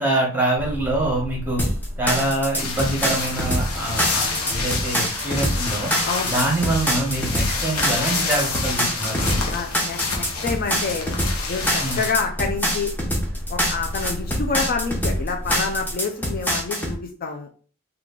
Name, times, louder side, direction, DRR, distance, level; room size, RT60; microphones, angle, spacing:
voice 1, 0.0-1.6 2.0-5.9 6.2-9.4 11.8-12.1, right 1 dB, 10° right, -2 dB, 1.0 m, -25 dB
sound 1, 0.6-15.9, equal, 40° right, 0.5 m, -36 dB
sound 2, 1.6-17.0, equal, 10° left, 0.7 m, -25 dB
sound 3, 2.6-12.1, left 4 dB, 80° left, 0.8 m, -28 dB
voice 2, 9.5-11.1 11.5-12.9 13.5-17.5, left 5 dB, 40° left, 3 dB, 0.4 m, -27 dB
3.1 x 2.4 x 3.7 m, 0.41 s
head